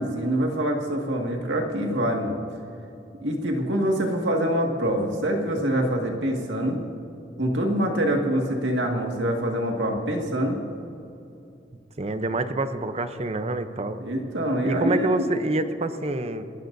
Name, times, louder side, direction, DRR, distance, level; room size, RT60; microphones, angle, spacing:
voice 1, 0.0-2.4 3.2-6.8 7.4-10.6 14.0-15.3, right 1 dB, 80° right, 1 dB, 1.9 m, -25 dB
voice 2, 12.0-14.0 14.6-16.4, right 2 dB, 35° right, 9 dB, 0.7 m, -27 dB
28.5 x 13.5 x 2.7 m, 2.6 s
head